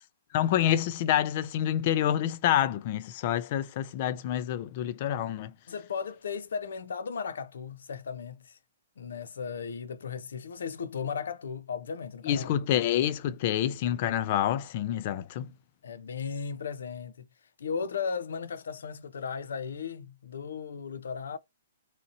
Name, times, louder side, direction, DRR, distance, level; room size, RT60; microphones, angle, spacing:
voice 1, 0.3-5.5 12.2-15.5, left 11 dB, 35° left, 0.3 m, -27 dB
voice 2, 5.7-8.6 9.0-12.5 15.8-17.3 17.6-21.4, left 6 dB, 80° left, 0.6 m, -36 dB
2.8 x 2.7 x 2.6 m
hypercardioid pair, 170°, 0 cm